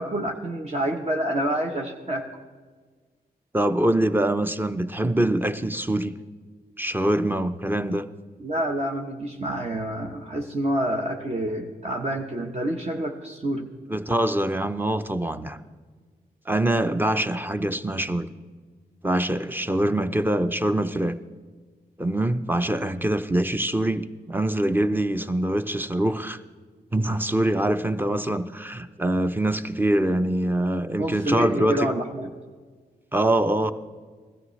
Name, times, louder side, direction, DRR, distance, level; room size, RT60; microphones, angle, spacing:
voice 1, 0.0-2.3 8.4-13.7 31.0-32.3, right 1 dB, 40° right, 1 dB, 1.0 m, -28 dB
voice 2, 3.5-6.2 6.8-8.1 13.9-15.6 16.5-18.3 19.0-21.2 22.0-26.4 26.9-31.9 33.1-33.7, right 1 dB, 10° right, 10 dB, 0.7 m, -24 dB
16.5 x 13.0 x 3.2 m, 1.5 s
cardioid pair, 55°, 18 cm